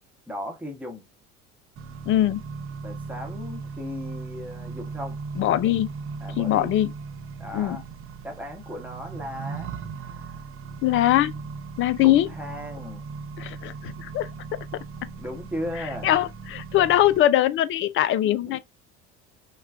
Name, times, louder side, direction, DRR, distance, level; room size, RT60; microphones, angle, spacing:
voice 1, 0.3-1.1 2.8-5.2 6.2-6.7 7.4-7.8 8.2-9.7 10.0-10.4 12.0-13.1 15.2-16.1 18.2-18.6, left 1 dB, 5° right, 1.0 m, -36 dB
Accelerating revving vroom, 1.8-17.2, right 5 dB, 40° right, 0.6 m, -38 dB
voice 2, 2.1-2.4 5.4-5.9 6.4-6.9 7.5-7.8 10.8-11.3 11.8-12.3 13.4-14.6 16.0-18.6, left 13 dB, 35° left, 0.4 m, -22 dB
3.1 x 2.2 x 2.3 m
hypercardioid pair, 70°, 36 cm